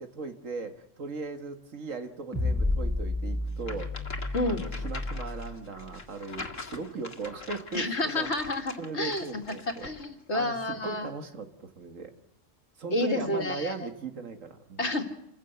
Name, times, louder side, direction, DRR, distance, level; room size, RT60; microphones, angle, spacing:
voice 1, 0.0-3.9 4.5-8.5 8.8-9.9 10.3-12.1 12.8-14.8, right 4 dB, 90° right, 7 dB, 2.1 m, -38 dB
sound 1, 2.3-5.7, left 2 dB, 10° right, 5.3 m, -31 dB
sound 2, 3.6-10.1, left 3 dB, 85° left, 2.3 m, -43 dB
voice 2, 7.7-9.5 9.8-11.1 12.9-13.7 14.8-15.0, left 2 dB, 60° left, 5 dB, 2.4 m, -30 dB
28.0 x 15.5 x 8.1 m, 0.79 s
omnidirectional pair, 1.3 m